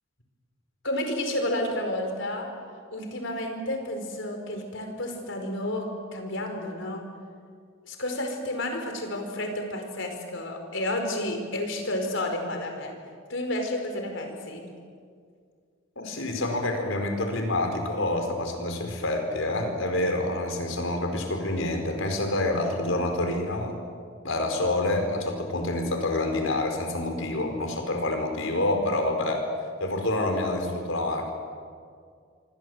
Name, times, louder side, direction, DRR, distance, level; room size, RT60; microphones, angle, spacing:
voice 1, 0.8-2.5 2.9-7.0 7.9-12.9 13.3-14.7, left 1 dB, 70° left, 4 dB, 4.9 m, -31 dB
voice 2, 16.0-23.8 24.2-29.5 29.8-31.3, left 2 dB, 90° left, 5 dB, 4.8 m, -27 dB
27.5 x 24.5 x 8.0 m, 2.2 s
head